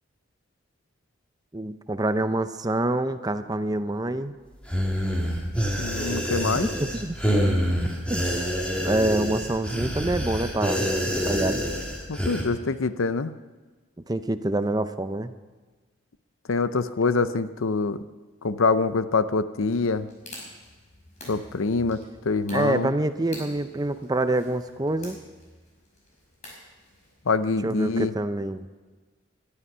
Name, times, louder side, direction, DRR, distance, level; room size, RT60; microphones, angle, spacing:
voice 1, 1.5-4.3 6.6-7.2 8.1-8.2 8.8-10.8 11.2-11.6 14.1-15.3 22.5-25.2 27.6-28.7, right 2 dB, 20° right, 10 dB, 0.6 m, -26 dB
sound 1, 4.6-12.4, equal, 5° left, 2.4 m, -26 dB
voice 2, 5.8-6.7 12.1-13.3 16.5-18.0 18.4-20.1 21.3-22.9 27.3-28.1, left 4 dB, 85° left, 13 dB, 0.7 m, -25 dB
sound 2, 19.7-27.4, left 1 dB, 35° left, 5.4 m, -47 dB
21.0 x 12.0 x 5.6 m, 1.3 s
head